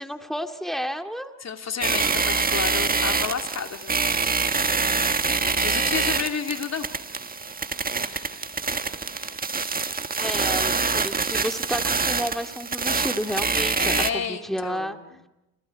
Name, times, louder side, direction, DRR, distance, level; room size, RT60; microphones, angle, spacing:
voice 1, 0.0-1.3 10.1-15.0, equal, ahead, 6 dB, 2.3 m, -31 dB
voice 2, 1.4-4.0 5.4-6.9 8.0-8.4 13.7-15.2, left 6 dB, 35° left, 5 dB, 3.0 m, -31 dB
sound 1, 1.8-14.1, right 4 dB, 20° right, 1.5 m, -25 dB
30.0 x 27.0 x 4.8 m, 0.94 s
hypercardioid pair, 80°, 48 cm